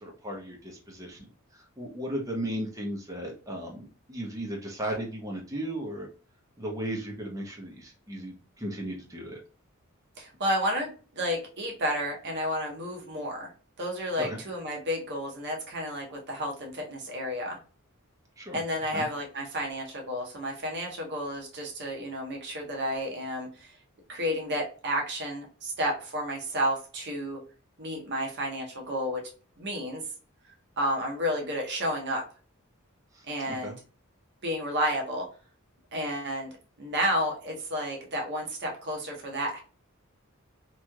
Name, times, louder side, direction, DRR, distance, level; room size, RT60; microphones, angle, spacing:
voice 1, 0.0-6.1 6.6-9.4 14.2-14.4 18.4-18.6 18.9-19.1 33.1-33.8, right 1 dB, 15° right, 0 dB, 0.8 m, -36 dB
voice 2, 10.2-13.5 13.8-17.6 18.5-23.7 24.1-27.4 27.8-29.2 29.6-30.0 30.8-32.2 33.3-33.8 34.4-35.2 35.9-36.5 36.8-39.6, equal, 50° right, 0 dB, 0.8 m, -31 dB
3.0 x 2.7 x 2.3 m, 0.38 s
head